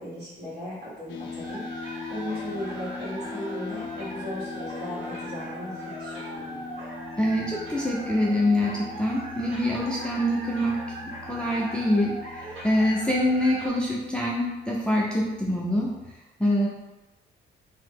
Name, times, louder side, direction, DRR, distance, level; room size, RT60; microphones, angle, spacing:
voice 1, 0.0-1.6 2.1-6.6, left 1 dB, 55° right, -7 dB, 1.5 m, -37 dB
sound 1, 1.1-16.1, left 5 dB, 70° left, 0.4 m, -41 dB
sound 2, 1.4-13.7, right 1 dB, 80° right, 1.0 m, -40 dB
voice 2, 7.2-10.8 11.3-15.9 16.4-16.7, left 1 dB, 5° left, -5 dB, 0.5 m, -25 dB
2.8 x 2.0 x 3.5 m, 1.1 s
cardioid pair, 90°, 20 cm